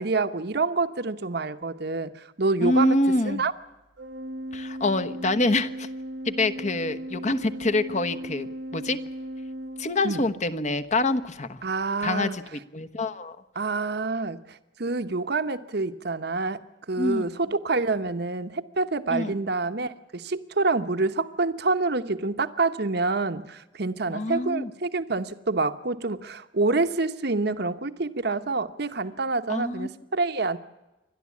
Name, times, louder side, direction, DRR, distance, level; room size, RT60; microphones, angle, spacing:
voice 1, 0.0-3.0 3.2-3.5 10.0-10.2 11.6-12.4 13.5-16.6 16.9-30.6, right 3 dB, 60° right, 9 dB, 1.1 m, -27 dB
voice 2, 2.6-3.4 4.5-5.9 6.2-9.0 9.8-11.6 12.0-13.4 17.0-17.3 19.1-19.4 24.1-24.7 29.5-29.9, left 2 dB, 40° left, 10 dB, 1.1 m, -26 dB
Organ, 4.0-10.5, equal, 85° right, 1.5 m, -37 dB
28.5 x 12.5 x 8.5 m, 1.0 s
head